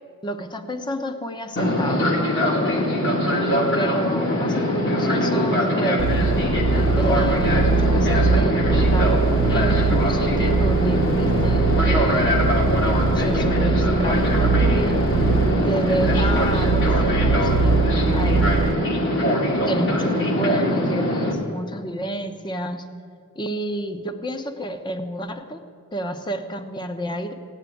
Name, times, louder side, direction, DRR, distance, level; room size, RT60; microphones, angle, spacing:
voice 1, 0.2-2.1 2.5-2.9 3.5-6.2 6.9-9.2 9.5-12.4 13.0-15.0 15.6-17.8 18.1-18.6 19.7-22.9 23.3-25.6 25.9-27.3, right 1 dB, 20° left, 8 dB, 0.9 m, -30 dB
Fixed-wing aircraft airplane, 1.6-21.3, equal, 55° left, 2.1 m, -22 dB
sound 1, 6.0-18.7, right 4 dB, 60° right, 0.4 m, -22 dB
16.0 x 8.9 x 9.1 m, 2.3 s
head